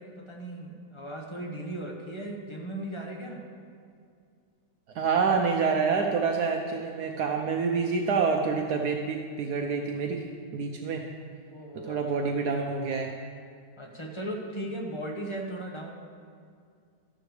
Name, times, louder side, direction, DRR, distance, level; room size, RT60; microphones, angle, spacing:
voice 1, 0.0-3.4 11.5-12.3 13.8-15.9, right 1 dB, 20° left, 0 dB, 1.1 m, -37 dB
voice 2, 4.9-10.2 10.5-11.0 11.9-13.1, right 5 dB, 70° right, 2 dB, 1.2 m, -27 dB
13.5 x 11.5 x 3.3 m, 2.2 s
omnidirectional pair, 1.9 m